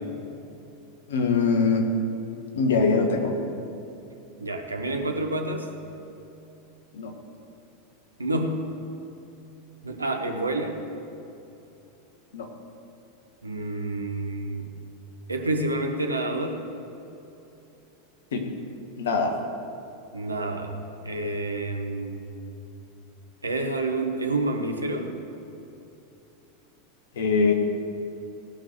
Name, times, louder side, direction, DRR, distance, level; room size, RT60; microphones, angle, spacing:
voice 1, 1.1-1.9 2.5-3.4 6.9-7.1 12.3-12.5 18.3-18.5 19.0-19.4 27.1-27.5, left 4 dB, 65° left, 3 dB, 1.6 m, -22 dB
voice 2, 4.4-5.7 8.2-8.6 9.8-10.8 13.4-14.7 15.3-16.6 20.1-20.7 21.0-22.2 23.4-25.2, right 2 dB, 85° right, 4 dB, 1.2 m, -28 dB
17.0 x 6.1 x 8.1 m, 2.9 s
figure-of-eight pair, 85°, 0 cm